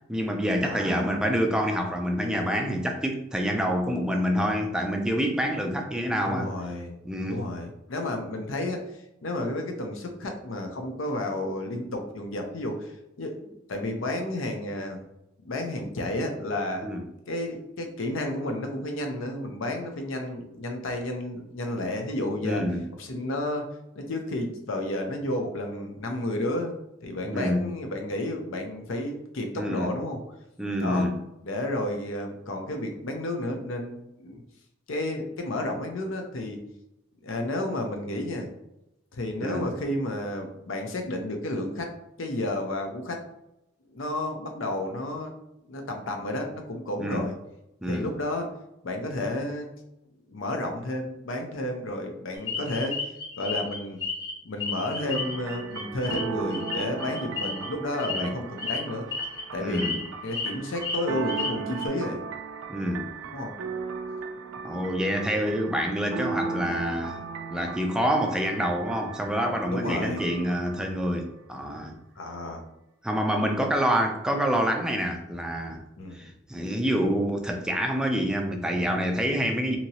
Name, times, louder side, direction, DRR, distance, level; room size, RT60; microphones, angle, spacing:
voice 1, 0.1-6.5 7.1-7.4 16.8-17.0 22.4-22.8 27.3-27.6 29.5-29.9 30.6-31.2 39.4-39.7 47.0-47.3 47.8-48.1 58.1-58.3 59.6-60.0 62.7-63.1 64.6-67.2 67.5-71.9 73.0-75.8 76.1-79.8, equal, 5° right, 3 dB, 0.3 m, -27 dB
voice 2, 0.6-1.1 6.2-7.0 7.3-15.0 15.4-16.9 17.3-22.6 22.9-30.2 30.8-31.1 31.4-34.4 34.9-36.6 37.2-38.5 39.1-41.9 42.2-43.2 43.9-45.3 45.7-47.3 47.9-48.5 48.8-49.7 50.3-54.0 54.4-59.1 59.5-60.0 60.2-62.2 63.3-63.5 64.7-64.8 69.7-70.3 72.2-72.6 76.0-76.3, left 1 dB, 75° left, 3 dB, 0.6 m, -31 dB
sound 1, 52.5-54.3 54.6-57.7 58.0-58.2 58.6-58.8 59.1-59.4 59.7-60.5 60.8-61.8, left 5 dB, 20° left, 0.8 m, -32 dB
sound 2, 55.0-71.1, right 5 dB, 85° right, 0.3 m, -37 dB
2.9 x 2.8 x 2.8 m, 0.85 s
head